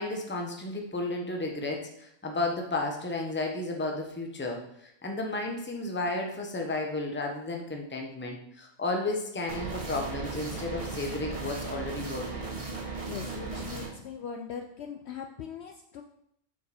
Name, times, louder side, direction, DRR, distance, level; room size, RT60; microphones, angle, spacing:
voice 1, 0.0-12.5, left 2 dB, 10° left, 1 dB, 0.7 m, -33 dB
sound 1, 9.5-13.9, right 3 dB, 25° right, 1.2 m, -36 dB
voice 2, 13.1-16.0, left 7 dB, 65° left, 4 dB, 0.7 m, -40 dB
7.2 x 4.5 x 4.2 m, 0.74 s
omnidirectional pair, 1.4 m